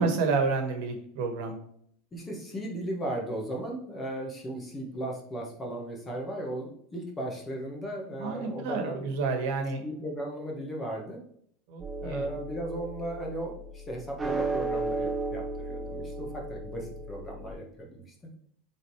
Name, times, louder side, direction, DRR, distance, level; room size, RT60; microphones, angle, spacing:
voice 1, 0.0-1.5 8.2-9.8 11.7-12.3, right 4 dB, 60° right, 5 dB, 1.5 m, -29 dB
voice 2, 2.1-9.1 9.8-11.2 12.0-18.0, right 1 dB, 15° left, 0 dB, 1.5 m, -36 dB
sound 1, 11.8-17.5, right 3 dB, 5° right, 1.0 m, -35 dB
7.8 x 3.8 x 4.8 m, 0.65 s
supercardioid pair, 160°, 0 cm